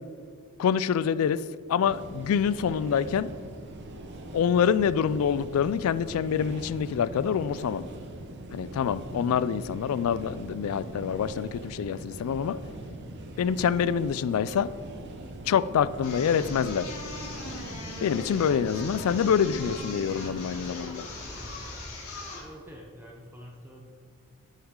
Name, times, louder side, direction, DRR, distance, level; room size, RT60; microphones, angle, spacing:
voice 1, 0.6-1.4 1.7-3.3 4.3-7.9 8.5-12.6 13.4-14.7 15.5-17.0 18.0-21.1, left 7 dB, 65° left, 17 dB, 0.3 m, -26 dB
sound 1, 1.8-20.6, right 1 dB, 50° right, 0.9 m, -41 dB
sound 2, 16.0-22.5, left 2 dB, 85° left, 2.3 m, -40 dB
voice 2, 22.4-23.8, equal, 10° right, 0 dB, 0.6 m, -47 dB
11.0 x 6.2 x 3.7 m, 2.2 s
head